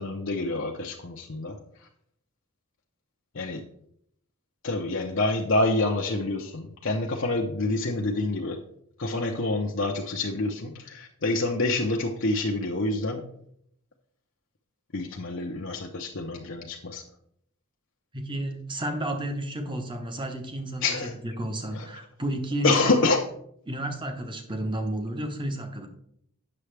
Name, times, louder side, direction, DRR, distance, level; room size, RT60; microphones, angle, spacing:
voice 1, 0.0-1.6 3.3-3.6 4.6-8.6 9.0-13.3 14.9-17.0 20.8-21.1 21.7-21.9 22.6-23.2, left 2 dB, 55° left, 0 dB, 0.7 m, -27 dB
voice 2, 18.1-20.8 21.2-23.0 23.7-25.9, right 1 dB, 20° right, 5 dB, 1.1 m, -31 dB
9.6 x 6.8 x 3.3 m, 0.70 s
head